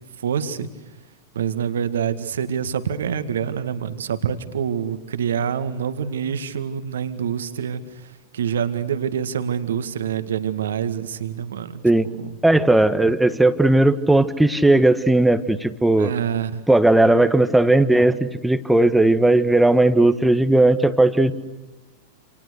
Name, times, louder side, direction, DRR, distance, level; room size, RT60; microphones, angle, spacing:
voice 1, 0.2-0.7 1.3-12.3 16.0-16.6, right 8 dB, 65° right, 10 dB, 2.0 m, -26 dB
voice 2, 12.4-16.1 16.7-21.3, right 2 dB, 5° right, 12 dB, 1.5 m, -16 dB
29.0 x 28.5 x 6.6 m, 1.1 s
figure-of-eight pair, 90°, 0 cm